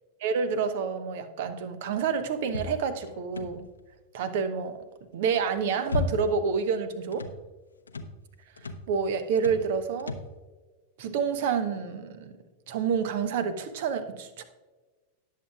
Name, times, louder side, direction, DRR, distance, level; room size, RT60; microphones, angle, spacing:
voice 1, 0.2-3.6 4.1-4.8 5.1-7.3 8.9-10.1 11.0-12.3 12.7-14.4, right 6 dB, 55° right, 11 dB, 0.9 m, -28 dB
sound 1, 2.5-3.8 5.3-6.5 6.8-7.4 7.9-8.2 8.6-8.9 9.3-9.7 10.0-10.3, left 4 dB, 75° left, 0.7 m, -34 dB
18.5 x 7.6 x 2.4 m, 1.3 s
figure-of-eight pair, 90°, 0 cm